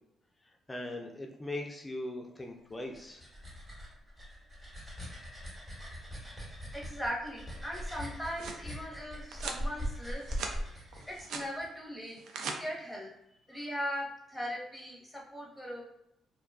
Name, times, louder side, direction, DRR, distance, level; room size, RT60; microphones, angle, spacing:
voice 1, 0.7-3.3, left 1 dB, 20° left, 2 dB, 0.4 m, -40 dB
sound 1, 2.7-11.7, equal, 20° right, 1.1 m, -41 dB
voice 2, 6.7-10.5 11.1-13.1 13.5-15.8, equal, ahead, -3 dB, 0.9 m, -39 dB
sound 2, 8.0-8.6 9.3-9.6 10.1-10.6 10.9-11.5 12.1-12.6, right 4 dB, 80° right, 0.3 m, -40 dB
2.5 x 2.2 x 2.3 m, 0.82 s
cardioid pair, 90°, 0 cm